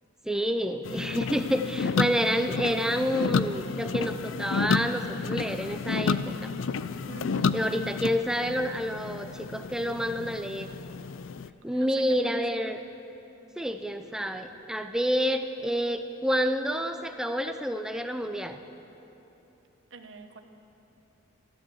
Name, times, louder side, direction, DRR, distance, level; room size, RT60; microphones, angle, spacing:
voice 1, 0.2-6.5 7.5-10.7 11.6-12.8 13.6-18.6, equal, 5° right, 7 dB, 0.5 m, -29 dB
sound 1, 0.8-11.5, left 5 dB, 70° left, 0.4 m, -31 dB
voice 2, 7.1-7.6 11.7-12.4 19.9-20.4, right 4 dB, 70° right, 5 dB, 1.1 m, -44 dB
14.0 x 13.0 x 7.8 m, 3.0 s
head